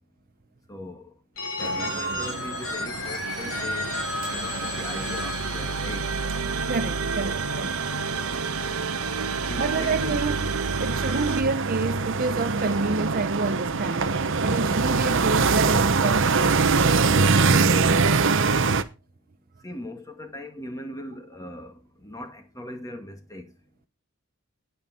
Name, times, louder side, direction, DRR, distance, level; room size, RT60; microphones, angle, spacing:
voice 1, 0.7-1.1 1.6-4.0 4.3-6.1 9.4-10.2 19.6-23.5, left 1 dB, 15° left, 2.0 m, -39 dB
Telephone, 1.4-7.1, left 2 dB, 65° left, 4.3 m, -33 dB
sound 1, 1.6-18.8, right 4 dB, 60° right, 0.9 m, -25 dB
sound 2, 3.2-11.4, right 4 dB, 90° right, 1.1 m, -30 dB
voice 2, 6.7-7.7 9.6-10.5 10.8-16.8, right 3 dB, 40° right, 0.6 m, -28 dB
9.5 x 9.3 x 4.3 m
head